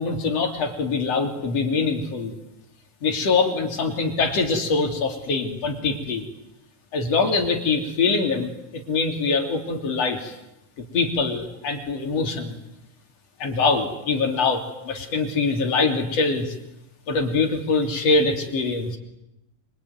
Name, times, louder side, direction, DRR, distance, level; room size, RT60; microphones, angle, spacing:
voice 1, 0.0-2.3 3.0-6.2 6.9-10.3 10.9-12.6 13.4-16.5 17.1-19.0, left 4 dB, 50° left, 4 dB, 4.1 m, -23 dB
25.5 x 24.5 x 9.4 m, 0.89 s
omnidirectional pair, 3.9 m